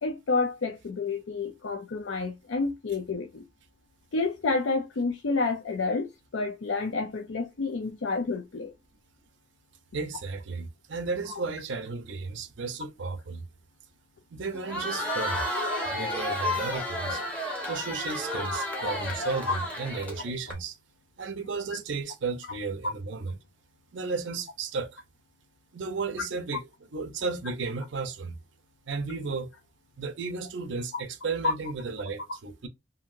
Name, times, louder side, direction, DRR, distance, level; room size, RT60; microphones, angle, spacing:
voice 1, 0.0-3.4 4.1-6.1 6.3-8.7 15.3-15.4 19.5-19.6 22.8-22.9 30.9-31.0 31.4-31.5, left 3 dB, 85° left, 0.5 m, -29 dB
voice 2, 9.9-13.4 14.3-15.4 15.9-17.2 17.7-20.8 21.2-23.4 23.9-25.0 25.7-26.6 26.9-28.3 28.9-29.5 30.0-32.7, right 4 dB, 75° right, 0.5 m, -34 dB
Crowd, 14.5-20.5, left 1 dB, 5° left, 0.8 m, -31 dB
2.8 x 2.6 x 2.5 m
head